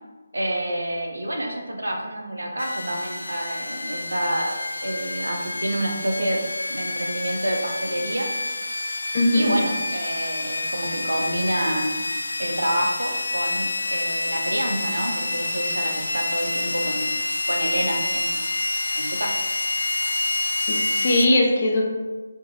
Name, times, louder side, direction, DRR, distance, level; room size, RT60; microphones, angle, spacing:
voice 1, 0.3-4.6 4.8-6.4 6.7-8.3 9.3-12.0 12.4-17.2 17.5-18.5 18.9-19.4, right 1 dB, 85° right, 2 dB, 0.7 m, -28 dB
sound 1, 2.6-21.3, left 2 dB, 80° left, 0.3 m, -28 dB
voice 2, 9.1-9.6 20.7-21.9, left 1 dB, 45° left, -1 dB, 0.7 m, -20 dB
4.6 x 2.7 x 2.8 m, 1.3 s
figure-of-eight pair, 155°, 0 cm